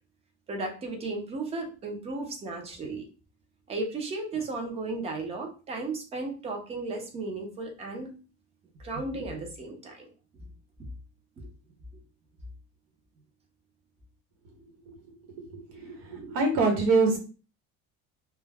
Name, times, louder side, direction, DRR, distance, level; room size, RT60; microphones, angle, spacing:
voice 1, 0.5-3.1 3.7-8.1 8.8-10.1 11.4-11.5, right 3 dB, 20° right, 3 dB, 0.5 m, -35 dB
voice 2, 15.5-17.2, right 3 dB, 80° right, 1 dB, 1.1 m, -25 dB
2.2 x 2.1 x 3.2 m, 0.34 s
cardioid pair, 170°, 29 cm